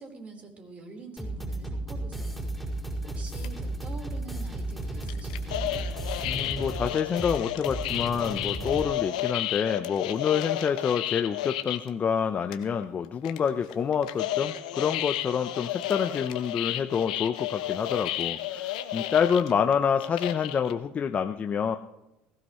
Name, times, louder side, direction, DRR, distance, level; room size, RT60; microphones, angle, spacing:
voice 1, 0.0-2.5 3.0-5.8, right 3 dB, 35° right, 2 dB, 4.3 m, -45 dB
sound 1, 1.2-8.8, right 1 dB, 5° right, 5.2 m, -34 dB
sound 2, 3.3-3.6 5.0-11.9 12.2-12.3 12.5-12.8 13.2-20.7, left 13 dB, 85° left, 1.1 m, -32 dB
voice 2, 6.3-21.8, left 7 dB, 35° left, 6 dB, 0.8 m, -27 dB
21.0 x 15.5 x 3.2 m, 0.91 s
hypercardioid pair, 75°, 4 cm